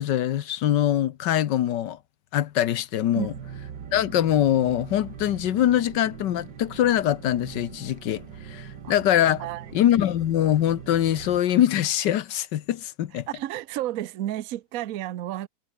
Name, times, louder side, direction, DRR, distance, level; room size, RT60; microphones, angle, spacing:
voice 1, 0.0-2.0 2.3-3.3 3.9-9.4 9.7-13.3, left 11 dB, 80° left, 1.5 m, -23 dB
sound 1, 3.2-11.4, right 7 dB, 80° right, 2.4 m, -42 dB
voice 2, 13.1-15.5, right 13 dB, 60° right, 1.0 m, -31 dB
omnidirectional pair, 1.9 m